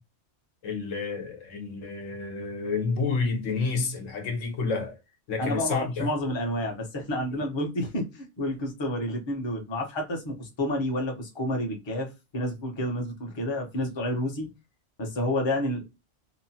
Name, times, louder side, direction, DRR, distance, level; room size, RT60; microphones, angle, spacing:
voice 1, 0.6-5.0 5.3-6.1 7.3-7.4, left 4 dB, 85° left, 1.1 m, -30 dB
voice 2, 5.4-14.5 15.0-15.8, left 1 dB, 30° left, 0.6 m, -30 dB
2.9 x 2.1 x 2.7 m
omnidirectional pair, 1.3 m